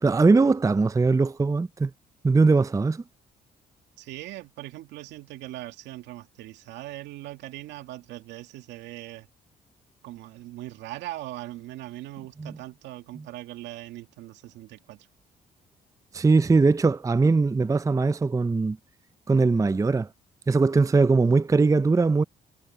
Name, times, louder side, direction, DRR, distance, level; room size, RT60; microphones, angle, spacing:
voice 1, 0.0-1.9 2.2-3.0 12.4-12.5 16.1-18.8 19.3-20.1 20.5-22.2, right 4 dB, 15° right, 0.5 m, -21 dB
voice 2, 4.0-9.3 10.0-15.1, right 16 dB, 80° right, 2.3 m, -40 dB
hypercardioid pair, 55°, 18 cm